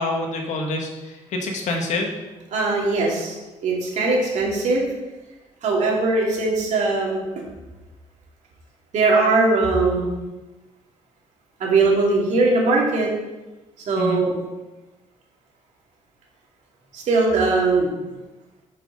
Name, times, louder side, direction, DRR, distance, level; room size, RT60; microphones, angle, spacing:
voice 1, 0.0-2.1 14.0-14.2, left 2 dB, 75° left, 2 dB, 1.5 m, -26 dB
voice 2, 2.5-3.4 3.6-4.8 5.6-7.2 8.9-10.1 11.6-13.1 13.9-14.3 16.9-17.9, right 3 dB, 70° right, -2 dB, 2.5 m, -20 dB
8.5 x 6.1 x 3.9 m, 1.1 s
cardioid pair, 100°, 13 cm